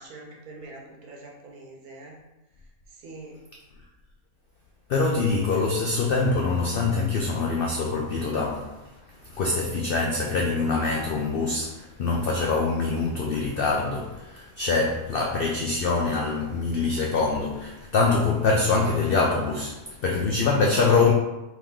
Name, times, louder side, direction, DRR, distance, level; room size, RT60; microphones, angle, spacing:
voice 1, 0.0-2.2 2.9-3.4, right 2 dB, 80° right, 1.3 m, -44 dB
voice 2, 4.9-8.8 9.3-21.1, left 3 dB, 80° left, 0.5 m, -24 dB
3.5 x 3.0 x 3.5 m
omnidirectional pair, 1.5 m